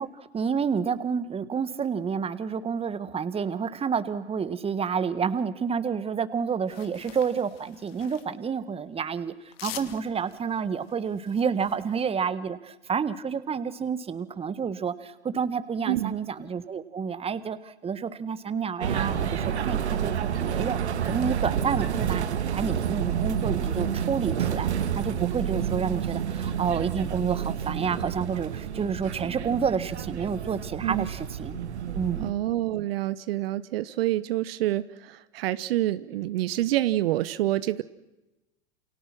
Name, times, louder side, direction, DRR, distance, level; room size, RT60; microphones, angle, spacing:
voice 1, 0.0-9.3 9.6-22.3 22.5-31.6 31.9-32.3, right 6 dB, 15° right, 14 dB, 1.6 m, -29 dB
sound 1, 6.7-8.3 9.5-12.0, left 12 dB, 60° left, 2.5 m, -45 dB
sound 2, 18.8-32.3, right 8 dB, 75° right, 2.0 m, -29 dB
voice 2, 32.2-37.8, right 15 dB, 60° right, 14 dB, 1.2 m, -27 dB
29.5 x 28.5 x 6.1 m, 1.0 s
hypercardioid pair, 100°, 33 cm